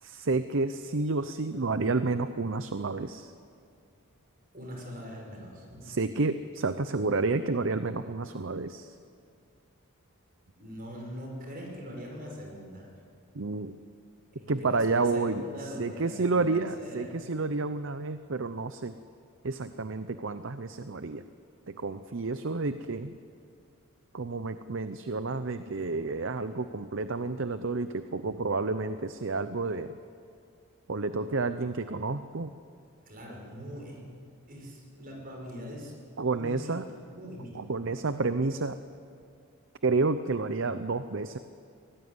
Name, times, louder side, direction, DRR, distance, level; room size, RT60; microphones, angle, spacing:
voice 1, 0.0-3.3 5.8-9.0 13.3-13.8 14.5-15.4 15.8-19.0 19.4-21.2 21.7-23.1 24.1-30.0 30.9-32.5 36.2-36.9 37.5-38.8 39.8-41.4, right 3 dB, 55° right, 11 dB, 0.7 m, -30 dB
voice 2, 4.5-5.8 10.5-12.9 14.3-16.5 16.8-17.1 33.1-34.0 34.5-35.9 36.3-37.7, equal, 40° right, 0 dB, 6.1 m, -42 dB
24.0 x 18.0 x 9.7 m, 2.3 s
head